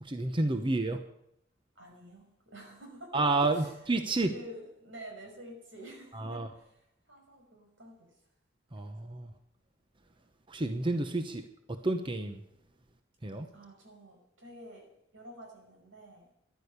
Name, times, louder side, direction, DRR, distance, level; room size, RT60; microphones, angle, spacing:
voice 1, 0.0-1.0 3.1-4.3 6.1-6.5 8.7-9.3 10.5-12.4 13.2-13.5, right 2 dB, 25° right, 7 dB, 0.9 m, -30 dB
voice 2, 0.6-0.9 1.8-3.2 3.5-3.7 4.3-8.1 13.5-14.9 15.1-16.3, right 1 dB, 85° right, 2 dB, 5.6 m, -49 dB
14.5 x 11.5 x 6.7 m, 0.79 s
head